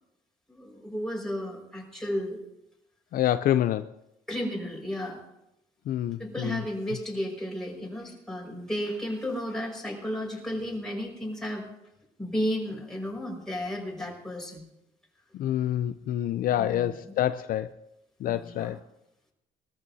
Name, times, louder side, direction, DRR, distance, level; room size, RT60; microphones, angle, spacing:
voice 1, 0.5-2.4 4.3-5.2 6.2-11.7 12.2-14.6 16.6-16.9 18.3-18.7, equal, 5° left, -2 dB, 5.3 m, -33 dB
voice 2, 3.1-3.9 5.9-6.6 15.4-17.9 18.2-18.8, left 12 dB, 60° left, 11 dB, 0.5 m, -27 dB
22.5 x 14.0 x 2.8 m, 0.87 s
cardioid pair, 110°, 17 cm